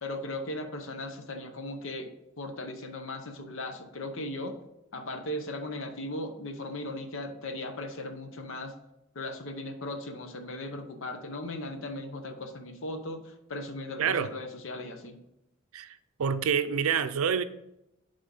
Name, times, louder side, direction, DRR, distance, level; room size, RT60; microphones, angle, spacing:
voice 1, 0.0-4.5 4.9-8.7 9.1-15.2, left 1 dB, 65° left, 0.9 m, -37 dB
voice 2, 14.0-14.3 15.7-17.4, right 7 dB, 90° right, 0.5 m, -27 dB
7.4 x 3.6 x 5.4 m
head